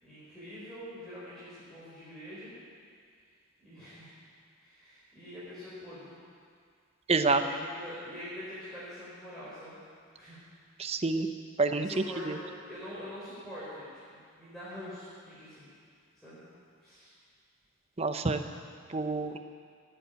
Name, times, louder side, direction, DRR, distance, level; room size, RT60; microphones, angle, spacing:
voice 1, 0.0-2.5 3.6-4.2 4.6-6.2 7.3-9.8 10.1-10.4 11.8-15.7 16.1-16.4 16.8-17.1, left 1 dB, ahead, -12 dB, 4.1 m, -45 dB
voice 2, 7.1-7.4 10.8-11.3 11.6-11.9 12.3-12.4 18.0-18.4 18.9-19.4, right 3 dB, 30° right, 8 dB, 0.7 m, -27 dB
18.0 x 8.0 x 9.2 m, 2.2 s
head